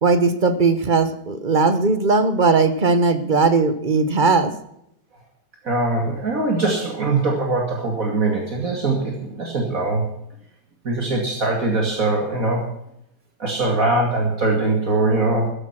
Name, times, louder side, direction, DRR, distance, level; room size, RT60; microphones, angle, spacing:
voice 1, 0.0-4.5, right 4 dB, 30° right, 11 dB, 1.3 m, -18 dB
voice 2, 5.6-10.1 10.8-12.6 13.4-15.5, right 2 dB, 55° right, 0 dB, 2.9 m, -22 dB
14.5 x 11.5 x 6.0 m, 0.75 s
omnidirectional pair, 1.7 m